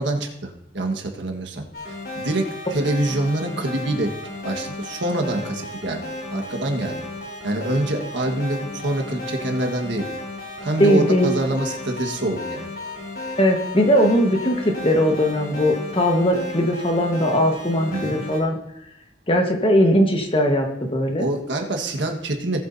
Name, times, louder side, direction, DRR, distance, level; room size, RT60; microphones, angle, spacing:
voice 1, 0.0-1.6 2.1-4.1 4.4-6.0 6.3-7.0 7.4-10.1 10.6-12.7 17.9-18.2 21.2-22.6, right 1 dB, 80° right, 3 dB, 1.5 m, -25 dB
sound 1, 1.7-18.4, left 2 dB, 60° left, 3.4 m, -34 dB
voice 2, 10.8-11.3 13.4-18.6 19.3-21.3, equal, 30° left, 3 dB, 1.4 m, -19 dB
18.0 x 8.1 x 2.7 m, 0.84 s
head